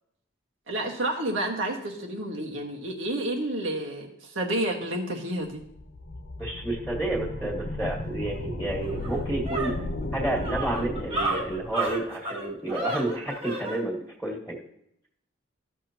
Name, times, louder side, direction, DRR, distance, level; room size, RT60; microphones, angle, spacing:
voice 1, 0.7-5.6, right 1 dB, 85° right, 0 dB, 1.7 m, -30 dB
sound 1, 5.5-12.0, left 1 dB, 80° left, 1.0 m, -35 dB
voice 2, 6.4-9.8 10.1-14.6, right 1 dB, 5° right, -5 dB, 1.7 m, -30 dB
sound 2, 8.3-8.4 8.8-13.8, right 2 dB, 30° right, 1.4 m, -32 dB
14.0 x 6.3 x 3.0 m, 0.75 s
head